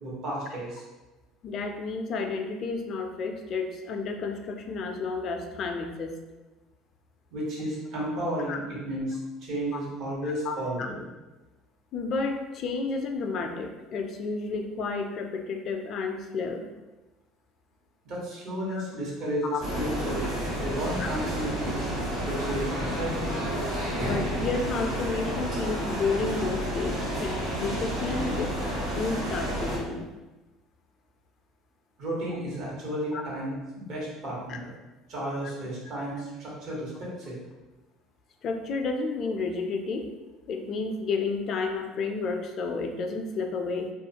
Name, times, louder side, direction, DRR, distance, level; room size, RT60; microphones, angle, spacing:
voice 1, 0.0-0.8 7.3-11.0 18.0-20.3 20.6-21.8 22.2-23.4 32.0-34.7 35.1-37.4, right 1 dB, 60° right, -5 dB, 1.1 m, -33 dB
voice 2, 1.4-6.1 8.5-8.6 9.7-9.9 10.2-10.9 11.9-16.7 18.7-18.8 19.5-19.6 21.0-21.1 24.0-28.5 28.9-30.1 33.1-33.2 34.5-34.6 38.4-40.1 40.5-43.9, left 4 dB, 50° left, 5 dB, 0.3 m, -31 dB
sound 1, 19.6-29.8, equal, 80° right, 1.3 m, -30 dB
2.4 x 2.2 x 2.8 m, 1.1 s
supercardioid pair, 90°, 0 cm